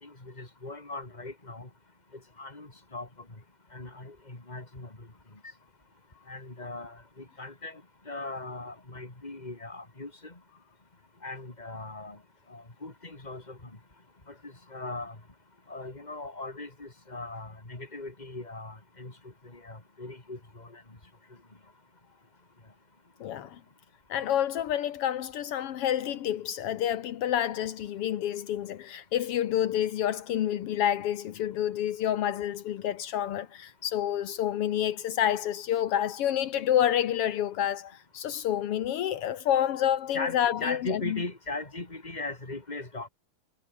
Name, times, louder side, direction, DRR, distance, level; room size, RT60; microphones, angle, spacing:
voice 1, 0.0-1.7 2.4-3.1 3.7-4.9 6.3-7.8 8.1-10.3 11.2-12.2 12.5-13.6 14.7-15.1 15.7-19.1 19.5-20.8 40.1-43.1, left 2 dB, 10° left, 3.3 m, -39 dB
voice 2, 23.2-23.6 24.1-41.2, left 11 dB, 85° left, 1.2 m, -28 dB
omnidirectional pair, 4.2 m